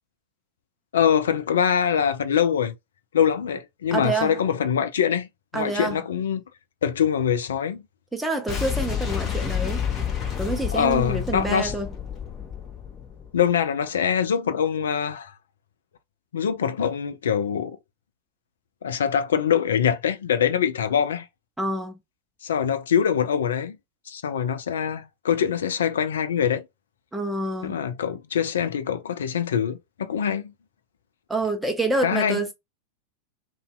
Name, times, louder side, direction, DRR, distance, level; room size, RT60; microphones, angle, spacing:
voice 1, 0.9-2.7 3.1-5.3 5.5-6.4 6.8-7.8 10.7-11.7 13.3-15.3 16.3-17.8 18.8-21.3 22.4-23.8 24.1-26.6 27.6-30.5 32.0-32.4, left 8 dB, 65° left, 0.4 m, -24 dB
voice 2, 3.9-4.4 5.5-6.0 8.1-9.8 10.4-11.9 21.6-21.9 27.1-27.8 31.3-32.5, right 2 dB, 5° right, 0.5 m, -27 dB
Boom, 8.5-13.4, left 8 dB, 25° left, 0.9 m, -29 dB
2.6 x 2.1 x 2.2 m
figure-of-eight pair, 90°, 0 cm